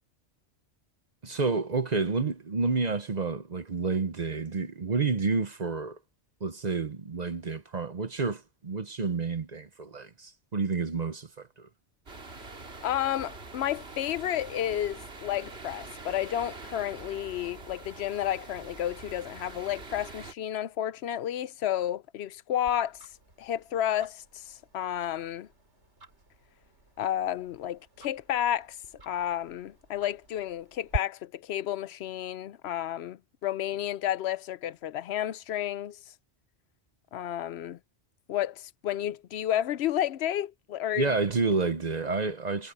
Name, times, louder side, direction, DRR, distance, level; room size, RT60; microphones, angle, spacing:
voice 1, 1.2-6.0 6.4-11.7 41.0-42.7, right 4 dB, 45° right, 0.8 m, -29 dB
sound 1, 12.1-20.3, right 3 dB, 65° right, 2.6 m, -44 dB
voice 2, 12.8-23.0 23.4-25.5 27.0-28.8 29.1-36.0 37.1-37.8 38.3-41.2, left 11 dB, 70° left, 0.8 m, -31 dB
Tick-tock, 22.7-31.0, right 1 dB, 85° right, 5.1 m, -44 dB
omnidirectional pair, 1.1 m